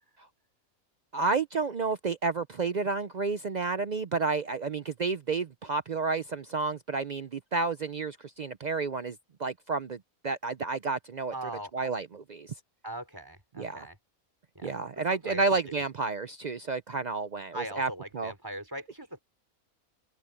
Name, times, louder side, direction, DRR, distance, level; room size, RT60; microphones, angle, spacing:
voice 1, 1.1-10.0 10.2-11.3 11.7-12.5 13.6-13.9 14.6-18.3, right 4 dB, 65° right, 0.4 m, -31 dB
voice 2, 11.3-11.7 12.8-14.0 14.6-14.7 15.1-15.4 17.5-19.2, right 1 dB, 15° right, 3.9 m, -40 dB
open air
omnidirectional pair, 1.5 m